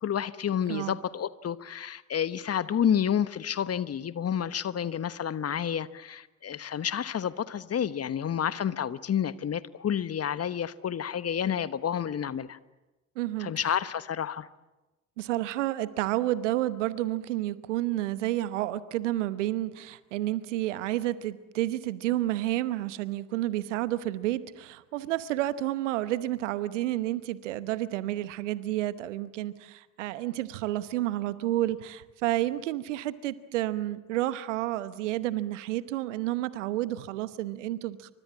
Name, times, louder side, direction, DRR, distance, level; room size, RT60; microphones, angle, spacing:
voice 1, 0.0-12.6 13.4-14.5, left 9 dB, 40° left, 1.2 m, -30 dB
voice 2, 13.2-13.5 15.2-38.1, right 15 dB, 80° right, 1.0 m, -30 dB
27.5 x 25.0 x 7.5 m
figure-of-eight pair, 45°, 36 cm